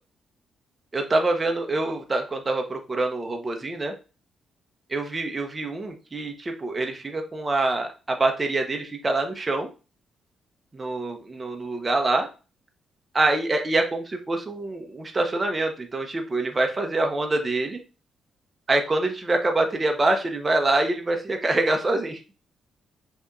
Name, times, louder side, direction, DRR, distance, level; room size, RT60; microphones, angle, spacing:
voice 1, 0.9-3.9 4.9-9.7 10.7-12.3 13.1-17.8 18.7-22.2, right 2 dB, 20° right, 4 dB, 0.6 m, -25 dB
5.4 x 2.8 x 2.4 m, 0.32 s
cardioid pair, 145°, 0 cm